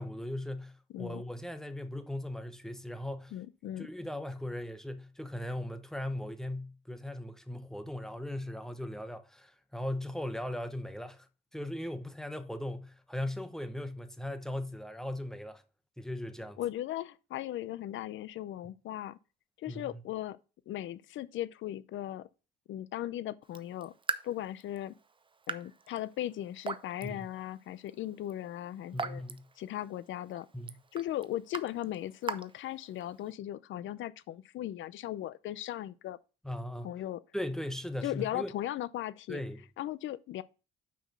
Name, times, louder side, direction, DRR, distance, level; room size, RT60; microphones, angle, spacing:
voice 1, 0.0-3.3 3.8-11.3 11.5-15.6 16.0-16.6 19.7-19.9 27.0-27.3 28.9-29.5 30.5-30.7 36.4-36.9 37.3-38.5 39.3-39.6, left 1 dB, ahead, 0.9 m, -38 dB
voice 2, 3.3-3.9 16.6-19.2 19.6-20.4 20.7-22.3 22.7-23.9 24.2-24.9 25.5-29.2 29.6-30.5 30.9-36.2 36.8-37.2 38.0-39.4 39.8-40.4, left 13 dB, 75° left, 0.6 m, -37 dB
Raindrop / Drip, 23.4-33.3, right 4 dB, 25° right, 0.6 m, -43 dB
5.9 x 5.1 x 6.8 m
cardioid pair, 90°, 20 cm